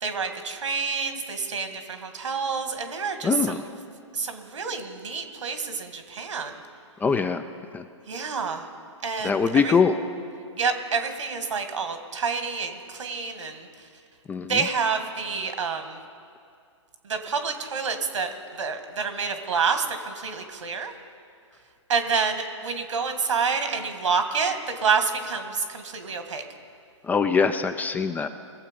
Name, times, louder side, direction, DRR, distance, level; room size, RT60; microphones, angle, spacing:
voice 1, 0.0-3.7 4.1-6.5 8.1-8.6 9.0-9.7 10.6-13.7 14.5-16.0 17.1-18.3 18.6-20.9 21.9-26.4, right 5 dB, 75° right, 7 dB, 1.7 m, -28 dB
voice 2, 3.2-3.6 7.0-7.4 7.7-7.8 9.2-10.0 14.3-14.5 27.1-28.3, left 5 dB, 10° left, 9 dB, 0.4 m, -22 dB
22.0 x 7.5 x 5.2 m, 2.3 s
figure-of-eight pair, 120°, 16 cm